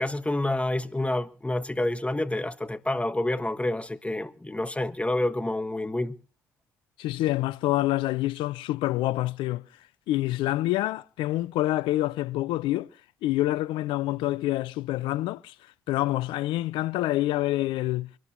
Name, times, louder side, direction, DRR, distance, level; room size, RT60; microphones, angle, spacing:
voice 1, 0.0-6.1, left 1 dB, 15° left, 1.4 m, -28 dB
voice 2, 7.0-9.6 10.1-12.9 13.2-15.5 15.9-18.1, left 16 dB, 70° left, 0.7 m, -27 dB
25.5 x 12.5 x 3.1 m
hypercardioid pair, 50°, 9 cm